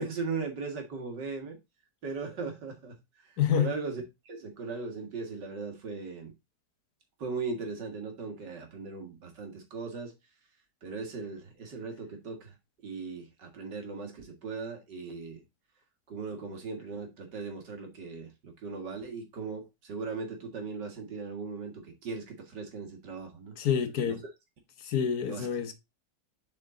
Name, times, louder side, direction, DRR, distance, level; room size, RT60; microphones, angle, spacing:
voice 1, 0.0-1.6 2.0-6.3 7.2-10.1 10.8-12.5 12.8-15.4 16.1-23.6 24.1-24.2 25.3-25.5, right 4 dB, 85° right, 2.5 m, -38 dB
voice 2, 3.4-3.7 23.6-24.2 24.8-25.7, left 8 dB, 65° left, 1.4 m, -27 dB
7.1 x 5.0 x 3.7 m
omnidirectional pair, 1.8 m